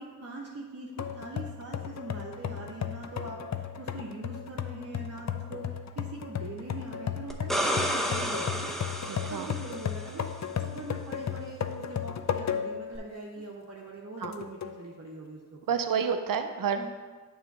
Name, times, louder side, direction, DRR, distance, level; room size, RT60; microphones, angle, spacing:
voice 1, 0.0-5.7 6.0-8.8 9.3-15.6 16.8-16.9, right 2 dB, 50° right, -3 dB, 1.0 m, -42 dB
sound 1, 1.0-12.9 13.4-13.5 14.2-14.8, left 8 dB, 55° left, 0.5 m, -35 dB
sound 2, 7.3-10.1 13.0-13.1, equal, ahead, 0.8 m, -31 dB
voice 2, 9.1-9.5 14.2-14.3 15.7-16.9, right 7 dB, 85° right, 7 dB, 0.6 m, -29 dB
6.8 x 3.2 x 5.9 m, 1.4 s
cardioid pair, 45°, 33 cm